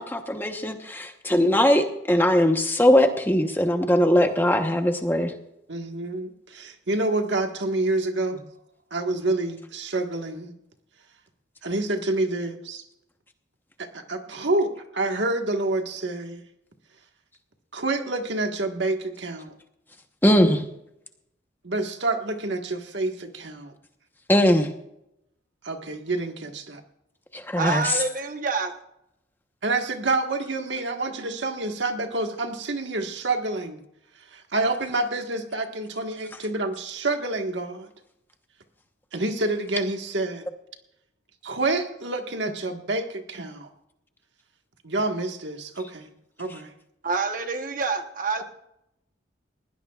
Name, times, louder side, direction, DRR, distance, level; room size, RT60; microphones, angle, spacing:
voice 1, 0.0-5.3 20.2-20.6 24.3-24.7 27.3-28.0, left 1 dB, 10° left, 1.0 m, -20 dB
voice 2, 5.7-8.4 8.9-10.5 11.6-12.8 13.8-16.4 17.7-19.5 21.6-23.7 25.6-26.8 29.6-33.8 34.3-37.9 39.1-40.5 41.4-43.7 44.8-46.1 46.4-46.7, right 2 dB, 65° right, 1.5 m, -28 dB
voice 3, 27.6-28.7 47.0-48.4, right 4 dB, 45° right, 1.0 m, -27 dB
20.5 x 16.0 x 2.4 m
head